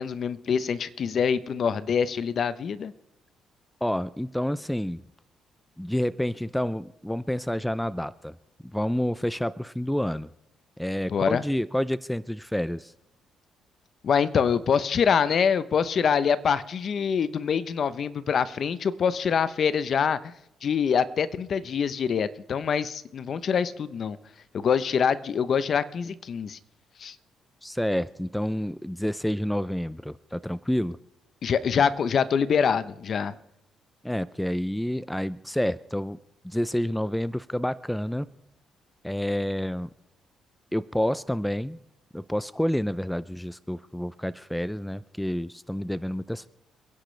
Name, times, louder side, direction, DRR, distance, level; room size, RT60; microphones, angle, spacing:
voice 1, 0.0-2.9 11.1-11.4 14.0-20.3 20.6-24.2 24.5-26.6 27.0-27.1 31.4-33.3, left 7 dB, 55° left, 14 dB, 0.8 m, -25 dB
voice 2, 3.8-5.0 5.8-8.3 8.6-10.3 10.8-12.9 27.6-31.0 34.0-36.2 36.4-38.3 39.0-39.9 40.7-41.8 42.1-46.5, equal, 5° left, 17 dB, 0.4 m, -29 dB
28.0 x 10.5 x 3.3 m, 0.84 s
cardioid pair, 90°, 0 cm